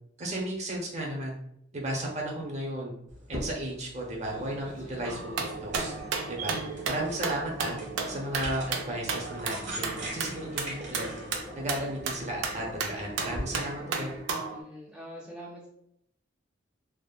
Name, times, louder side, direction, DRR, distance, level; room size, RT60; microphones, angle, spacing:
voice 1, 0.2-1.4 1.7-2.9 3.3-5.9 6.3-6.6 6.9-7.8 8.1-11.1 11.5-14.1, right 1 dB, 40° right, -1 dB, 0.7 m, -34 dB
sound 1, 3.1-13.4, right 1 dB, 70° right, 1.1 m, -42 dB
sound 2, 4.3-14.2, left 1 dB, 80° left, 1.4 m, -46 dB
sound 3, 5.0-14.6, right 5 dB, 90° right, 0.5 m, -35 dB
voice 2, 7.2-7.5 14.5-15.7, equal, 5° right, -5 dB, 0.4 m, -45 dB
3.5 x 2.1 x 2.3 m, 0.76 s
head